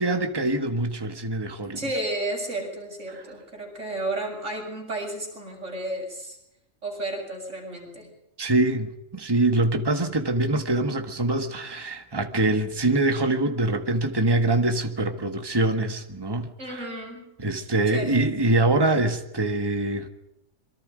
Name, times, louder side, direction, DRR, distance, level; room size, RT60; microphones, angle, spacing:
voice 1, 0.0-1.8 8.4-16.9 17.4-20.1, right 2 dB, 20° right, 1.7 m, -24 dB
voice 2, 1.7-6.4 6.8-8.1 16.6-17.3 17.9-18.3, right 1 dB, 70° right, 7.9 m, -32 dB
27.0 x 23.5 x 5.2 m
omnidirectional pair, 1.3 m